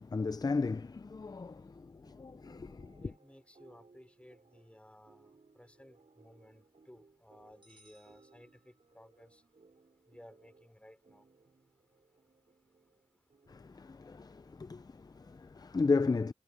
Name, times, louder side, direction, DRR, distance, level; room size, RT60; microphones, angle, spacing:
voice 1, 0.0-3.1 13.5-16.3, left 4 dB, 35° left, 0.4 m, -34 dB
sound 1, 2.1-13.8, right 3 dB, 70° right, 6.4 m, -65 dB
voice 2, 3.0-9.4 10.1-11.2, left 1 dB, 10° left, 3.1 m, -58 dB
sound 2, 7.6-9.2, right 1 dB, 45° right, 4.8 m, -66 dB
wide cardioid pair, 60°, 12 cm